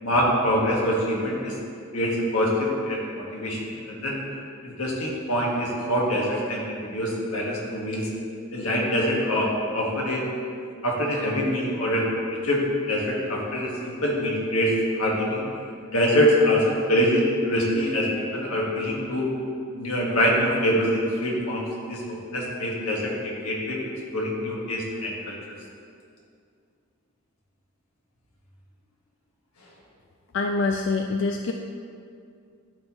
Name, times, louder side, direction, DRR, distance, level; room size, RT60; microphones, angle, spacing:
voice 1, 0.0-1.5 1.9-4.2 4.6-8.1 8.5-10.2 10.8-12.1 12.4-12.6 12.9-14.7 15.0-15.4 15.9-19.3 19.7-23.8 24.1-25.3, equal, 85° left, -3 dB, 1.5 m, -24 dB
voice 2, 30.3-31.5, left 3 dB, 55° left, 3 dB, 0.3 m, -25 dB
12.5 x 4.2 x 2.9 m, 2.4 s
head